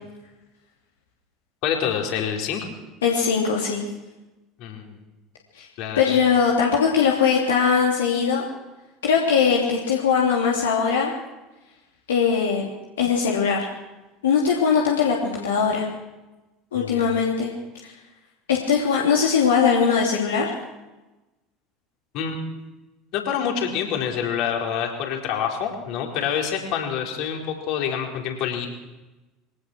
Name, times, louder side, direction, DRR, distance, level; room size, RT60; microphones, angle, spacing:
voice 1, 1.6-2.7 4.6-5.0 5.8-6.0 16.7-17.2 22.1-22.4 23.1-28.7, left 8 dB, 55° left, 1 dB, 4.6 m, -27 dB
voice 2, 3.0-3.8 5.5-5.7 6.0-8.4 9.0-11.1 12.1-12.7 13.0-13.6 14.2-15.9 16.7-17.5 17.8-17.9 18.5-20.5, left 6 dB, 70° left, -2 dB, 3.1 m, -20 dB
23.5 x 18.0 x 6.3 m, 1.1 s
figure-of-eight pair, 70°, 0 cm